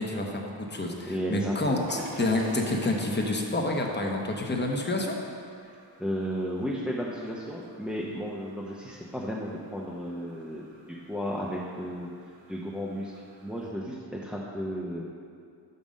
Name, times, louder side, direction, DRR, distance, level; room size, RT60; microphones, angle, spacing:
voice 1, 0.0-5.2, left 2 dB, 25° left, 1 dB, 1.0 m, -28 dB
voice 2, 1.1-1.9 5.6-12.1 12.5-13.1 13.4-15.0, equal, ahead, -4 dB, 0.6 m, -34 dB
sound 1, 1.8-13.7, right 1 dB, 75° right, 1.2 m, -48 dB
6.0 x 5.5 x 5.1 m, 2.3 s
cardioid pair, 80°, 44 cm